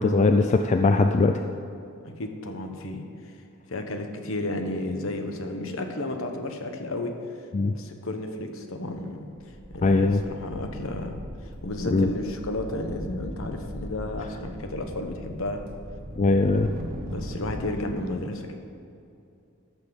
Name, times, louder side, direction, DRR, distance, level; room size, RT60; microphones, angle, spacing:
voice 1, 0.0-1.4 7.5-7.7 9.8-10.2 11.9-12.1 16.2-16.7, left 3 dB, 30° left, 6 dB, 0.3 m, -20 dB
voice 2, 2.0-3.3 3.7-7.1 7.6-9.3 9.7-15.6 17.1-18.5, left 1 dB, 65° left, 5 dB, 1.0 m, -33 dB
sound 1, 8.9-9.1 9.4-17.8, equal, 40° right, 1.2 m, -39 dB
13.5 x 6.2 x 5.2 m, 2.6 s
head